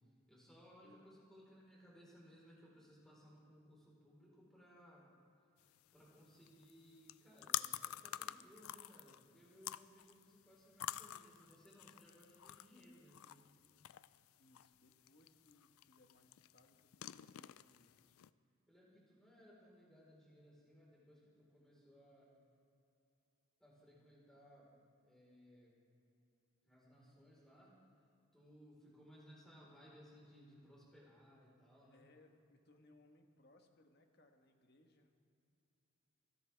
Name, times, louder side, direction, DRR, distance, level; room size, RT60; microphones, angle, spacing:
voice 1, 0.3-5.1 5.9-13.5 18.7-22.3 23.6-24.7 25.0-25.7 26.6-27.8 28.3-32.0, equal, ahead, -5 dB, 4.2 m, -62 dB
sound 1, 5.6-18.3, left 13 dB, 80° left, 0.4 m, -49 dB
voice 2, 14.4-17.9 31.9-35.1, left 2 dB, 50° left, 4 dB, 1.3 m, -68 dB
27.0 x 11.0 x 3.5 m, 2.7 s
head